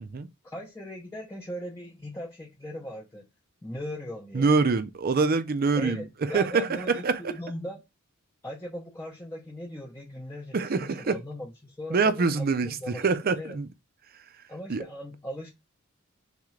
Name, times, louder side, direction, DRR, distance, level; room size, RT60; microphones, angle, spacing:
voice 1, 0.4-3.3 3.6-4.5 5.7-7.8 8.4-13.1 13.4-13.6 14.5-15.5, left 1 dB, 15° left, 0.7 m, -39 dB
voice 2, 4.3-7.3 10.5-11.2 11.9-13.7 14.7-14.8, right 4 dB, 45° right, 0.5 m, -25 dB
3.7 x 3.6 x 3.2 m
head